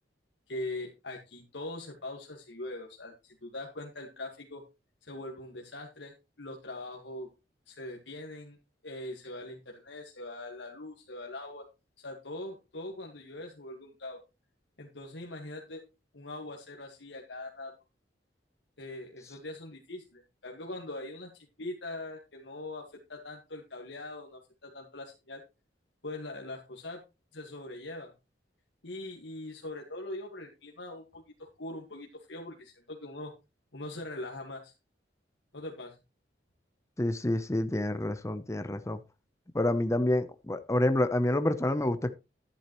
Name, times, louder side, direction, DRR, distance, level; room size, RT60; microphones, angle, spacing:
voice 1, 0.5-4.6 5.0-7.3 7.7-8.6 8.8-11.6 12.0-14.2 14.8-15.8 16.1-17.7 18.8-25.4 26.0-27.0 27.3-28.1 28.8-33.3 33.7-34.7 35.5-36.0, left 2 dB, 75° left, 1.7 m, -42 dB
voice 2, 37.0-39.0 39.5-42.1, left 1 dB, 15° left, 0.6 m, -28 dB
11.5 x 10.5 x 3.0 m
head